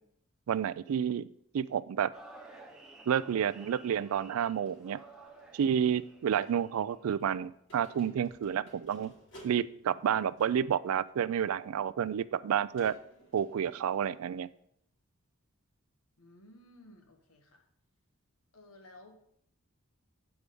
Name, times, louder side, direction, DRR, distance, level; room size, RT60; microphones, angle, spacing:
voice 1, 0.5-1.3 1.5-2.1 3.1-5.0 5.5-9.1 9.4-13.0 13.3-14.5, right 8 dB, 85° right, 17 dB, 0.3 m, -30 dB
sound 1, 2.1-7.3, right 2 dB, 5° right, 0.8 m, -54 dB
sound 2, 3.4-10.8 11.6-11.7 12.7-14.1, equal, 60° left, 2.9 m, -59 dB
voice 2, 16.2-17.6 18.5-19.1, left 1 dB, 90° left, 4 dB, 1.3 m, -56 dB
8.2 x 4.9 x 5.2 m, 0.71 s
head